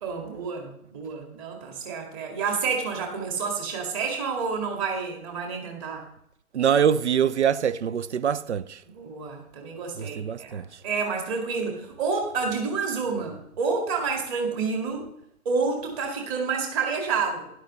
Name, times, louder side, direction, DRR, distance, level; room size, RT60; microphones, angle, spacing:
voice 1, 0.0-6.0 9.0-15.1 15.5-17.5, right 5 dB, 25° right, 2.1 m, -29 dB
voice 2, 6.5-8.8 10.0-10.7, right 8 dB, 50° right, 0.6 m, -24 dB
12.5 x 11.0 x 3.2 m
figure-of-eight pair, 140°, 44 cm